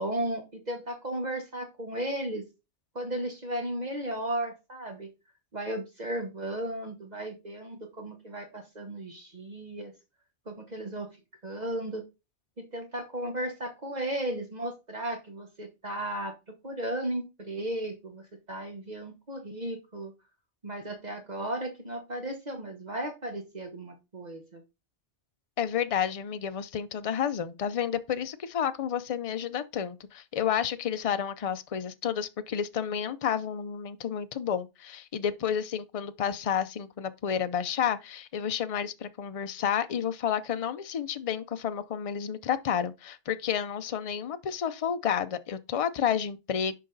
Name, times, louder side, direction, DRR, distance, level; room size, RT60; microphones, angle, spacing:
voice 1, 0.0-2.4 2.9-5.1 5.5-9.9 10.5-11.1 11.4-12.0 12.6-16.3 16.6-20.1 20.6-24.6, right 1 dB, 40° right, 1.2 m, -35 dB
voice 2, 25.6-46.7, left 8 dB, 45° left, 0.4 m, -30 dB
6.6 x 5.1 x 3.9 m
omnidirectional pair, 1.2 m